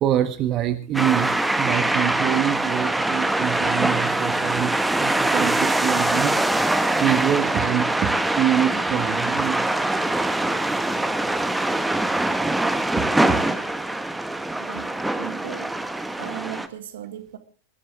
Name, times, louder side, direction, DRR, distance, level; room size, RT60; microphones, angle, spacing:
voice 1, 0.0-6.4 7.0-8.1 8.4-9.8 13.0-13.4, right 11 dB, 35° right, 7 dB, 1.4 m, -25 dB
sound 1, 0.9-16.7, right 2 dB, 5° right, 1.2 m, -23 dB
voice 2, 14.6-15.8 16.2-17.4, right 12 dB, 60° right, 9 dB, 1.9 m, -37 dB
23.5 x 12.5 x 3.5 m, 0.36 s
figure-of-eight pair, 85°, 0 cm